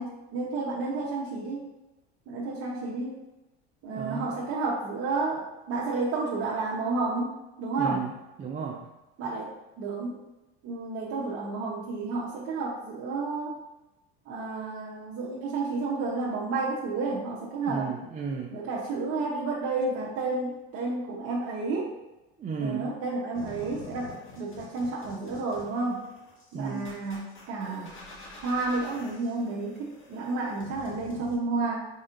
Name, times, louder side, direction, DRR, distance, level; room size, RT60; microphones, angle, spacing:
voice 1, 0.0-1.7 2.3-3.2 3.8-8.0 9.2-9.5 9.8-10.2 10.6-13.6 14.3-17.9 18.5-21.9 22.6-26.0 26.5-27.9 28.4-31.9, right 3 dB, 50° right, -4 dB, 0.8 m, -31 dB
voice 2, 3.9-4.3 7.8-8.1 8.4-8.9 17.7-18.6 22.4-22.9 26.5-26.9, right 5 dB, 25° right, -1 dB, 0.4 m, -33 dB
sound 1, 23.4-31.3, left 3 dB, 40° left, 1.4 m, -47 dB
4.1 x 3.6 x 2.5 m, 1.0 s
supercardioid pair, 95°, 31 cm